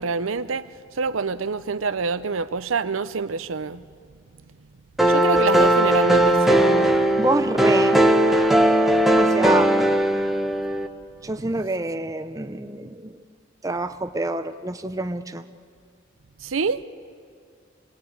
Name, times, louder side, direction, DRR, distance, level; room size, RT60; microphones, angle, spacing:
voice 1, 0.0-3.8 5.1-6.7 16.4-16.8, right 5 dB, 85° right, 0.7 m, -26 dB
sound 1, 5.0-10.9, right 1 dB, ahead, 1.1 m, -18 dB
voice 2, 7.2-8.0 9.2-9.7 11.2-13.2 13.6-15.4, right 2 dB, 15° right, 0.7 m, -27 dB
26.5 x 19.0 x 8.7 m
head